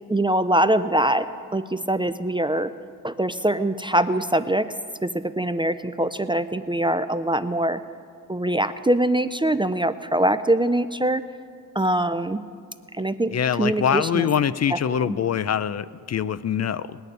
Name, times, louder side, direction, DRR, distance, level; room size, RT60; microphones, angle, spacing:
voice 1, 0.1-2.7 3.0-4.7 5.0-7.8 8.3-11.2 11.8-12.4 13.0-13.3 13.6-14.3 14.7-14.8 15.0-15.2, right 1 dB, 15° right, 12 dB, 0.4 m, -23 dB
voice 2, 13.3-17.0, left 8 dB, 50° left, 16 dB, 0.4 m, -24 dB
19.5 x 6.7 x 9.7 m, 2.1 s
wide cardioid pair, 110°, 34 cm